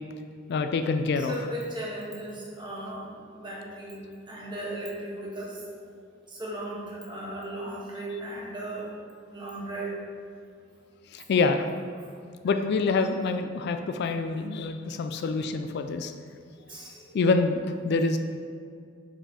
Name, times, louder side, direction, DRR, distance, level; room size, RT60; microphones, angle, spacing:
voice 1, 0.5-1.3 11.1-11.7 12.4-16.1 17.1-18.2, left 4 dB, 55° left, 7 dB, 0.3 m, -26 dB
voice 2, 1.1-4.0 4.3-5.6 6.3-8.9 9.3-10.0 11.9-12.2 16.5-17.2, right 1 dB, 25° right, -5 dB, 1.4 m, -37 dB
5.5 x 5.0 x 4.1 m, 2.2 s
head